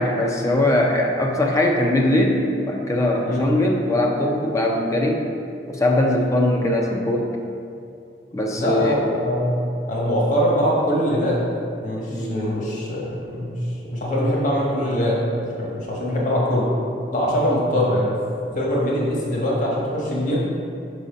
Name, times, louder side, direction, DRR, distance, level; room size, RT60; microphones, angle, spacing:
voice 1, 0.0-5.2 5.7-7.3 8.3-9.1 12.1-12.4, left 1 dB, 20° left, 0 dB, 0.5 m, -21 dB
voice 2, 8.6-9.6 9.9-11.4 11.8-13.6 13.9-15.2 15.6-16.7 17.1-18.2 18.5-20.4, equal, 45° left, -5 dB, 1.3 m, -22 dB
6.1 x 4.1 x 5.0 m, 2.5 s
head